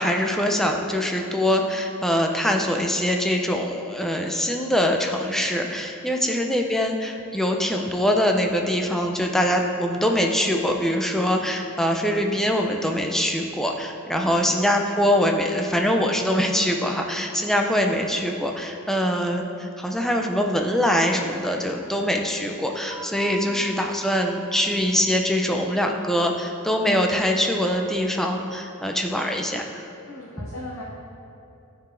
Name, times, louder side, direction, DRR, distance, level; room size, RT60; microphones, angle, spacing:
voice 1, 0.0-29.9 30.4-30.5, equal, ahead, 2 dB, 0.4 m, -23 dB
voice 2, 14.2-14.6 23.5-23.9 30.0-30.8, left 1 dB, 70° left, -4 dB, 0.8 m, -40 dB
sound 1, 22.9-25.6, right 2 dB, 40° right, 1.0 m, -42 dB
12.5 x 4.7 x 2.5 m, 2.8 s
head